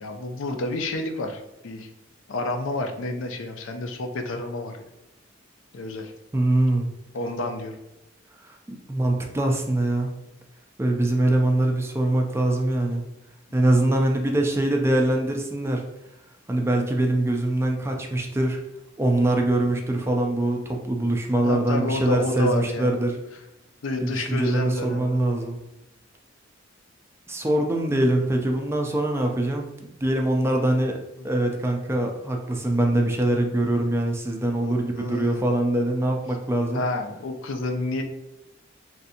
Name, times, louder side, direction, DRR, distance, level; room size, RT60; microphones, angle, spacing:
voice 1, 0.0-1.9 2.3-4.8 5.7-6.1 7.1-7.8 21.4-23.0 23.8-25.2 31.2-31.3 34.6-35.5 36.7-38.0, left 2 dB, 75° left, 5 dB, 0.4 m, -29 dB
voice 2, 6.3-6.9 8.4-8.5 8.9-10.1 10.8-13.0 13.5-15.8 16.5-18.6 19.0-23.1 24.0-25.6 27.3-31.0 31.2-36.8, right 1 dB, 15° right, 2 dB, 0.3 m, -23 dB
3.2 x 2.6 x 2.7 m, 0.90 s
head